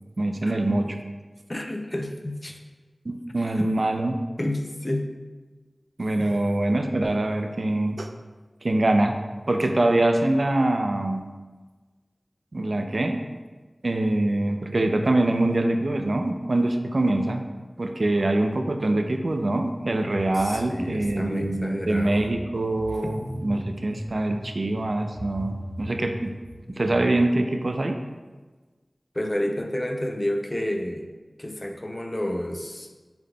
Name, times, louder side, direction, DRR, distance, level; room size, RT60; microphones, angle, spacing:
voice 1, 0.2-1.0 3.1-4.2 6.0-8.1 8.6-9.2 9.5-11.2 12.5-13.2 13.8-17.4 17.8-26.3 26.7-28.0, right 2 dB, 70° right, 5 dB, 0.3 m, -24 dB
voice 2, 1.5-2.6 3.6-3.7 4.4-5.1 6.2-6.3 20.4-22.2 23.0-23.2 29.1-31.1 31.4-32.9, left 1 dB, 30° left, 3 dB, 0.4 m, -30 dB
sound 1, 20.2-27.0, equal, 25° right, 1.2 m, -40 dB
5.6 x 3.4 x 2.2 m, 1.3 s
wide cardioid pair, 50°, 0 cm